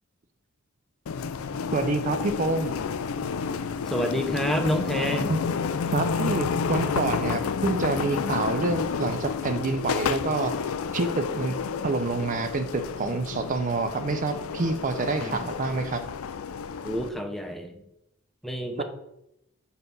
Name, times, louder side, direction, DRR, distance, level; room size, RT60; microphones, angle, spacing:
sound 1, 1.1-17.1, left 5 dB, 85° left, 0.4 m, -30 dB
voice 1, 1.7-2.7 5.3-5.4 5.9-10.5 10.9-11.6 11.8-16.0 18.8-18.9, right 3 dB, 40° right, 8 dB, 0.5 m, -27 dB
voice 2, 3.9-5.4 15.2-15.4 16.8-17.8 18.4-18.8, equal, ahead, 4 dB, 0.6 m, -28 dB
5.5 x 3.9 x 5.9 m, 0.83 s
head